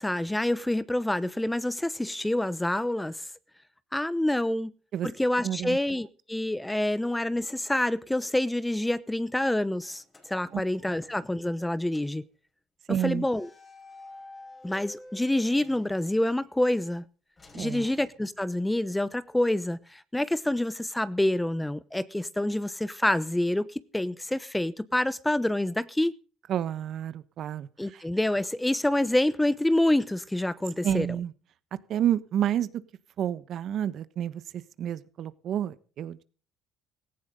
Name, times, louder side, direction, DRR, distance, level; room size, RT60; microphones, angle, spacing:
voice 1, 0.0-3.3 3.9-4.7 5.0-10.0 10.3-12.2 12.9-13.5 14.6-17.0 17.5-26.1 27.8-31.1, left 1 dB, 5° left, 0.9 m, -27 dB
voice 2, 5.4-5.8 10.5-10.6 12.9-13.3 17.5-17.8 26.5-28.0 30.8-31.3 31.9-32.7 33.2-36.2, right 10 dB, 55° right, 1.2 m, -30 dB
sound 1, 9.8-11.6 11.9-12.2 13.3-16.5 17.4-18.8, left 2 dB, 25° left, 5.2 m, -51 dB
17.5 x 15.0 x 3.8 m
supercardioid pair, 85°, 0 cm